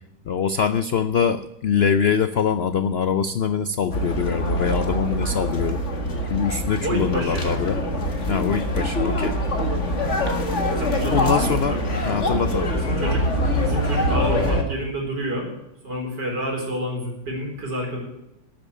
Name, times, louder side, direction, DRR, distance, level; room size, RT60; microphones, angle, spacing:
voice 1, 0.3-5.8 6.3-7.8 8.3-9.3 11.1-11.8 12.1-12.7, left 7 dB, 90° left, 12 dB, 0.5 m, -23 dB
sound 1, 3.9-14.6, equal, 45° left, 2.0 m, -24 dB
voice 2, 6.8-7.4 10.8-11.8 12.8-13.2 13.6-15.5 15.8-18.0, right 1 dB, 80° right, 0 dB, 4.9 m, -29 dB
12.5 x 8.9 x 8.4 m, 0.88 s
omnidirectional pair, 1.8 m